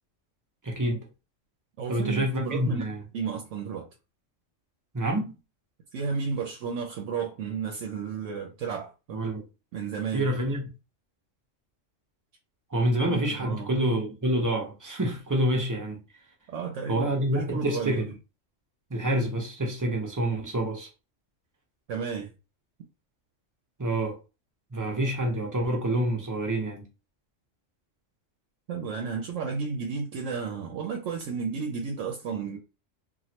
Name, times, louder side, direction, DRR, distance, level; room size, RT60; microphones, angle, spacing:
voice 1, 0.6-1.0 1.9-3.0 4.9-5.3 9.1-9.4 10.1-10.6 12.7-16.0 16.9-18.1 18.9-20.9 23.8-24.2 24.7-26.8, right 1 dB, 20° right, 0.6 m, -27 dB
voice 2, 1.8-2.8 3.1-3.9 5.9-9.2 9.7-10.3 13.1-13.7 16.5-18.0 21.9-22.3 28.7-32.6, right 6 dB, 75° right, 0.9 m, -33 dB
3.1 x 2.4 x 2.8 m
omnidirectional pair, 1.3 m